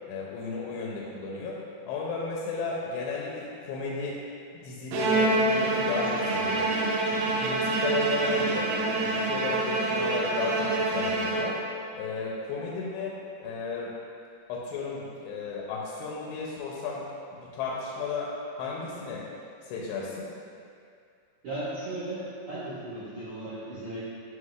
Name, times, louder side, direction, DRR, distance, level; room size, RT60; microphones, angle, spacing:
voice 1, 0.1-1.6 1.9-4.2 4.5-6.7 7.1-8.7 9.0-11.6 11.9-13.9 14.5-17.0 17.3-18.3 18.6-19.3 19.6-20.3, left 4 dB, 85° left, -4 dB, 2.8 m, -34 dB
Bowed string instrument, 4.9-11.9, right 2 dB, 90° right, 2.1 m, -26 dB
voice 2, 21.4-24.0, right 1 dB, 60° right, -14 dB, 1.5 m, -36 dB
8.1 x 5.0 x 2.4 m, 2.4 s
omnidirectional pair, 4.9 m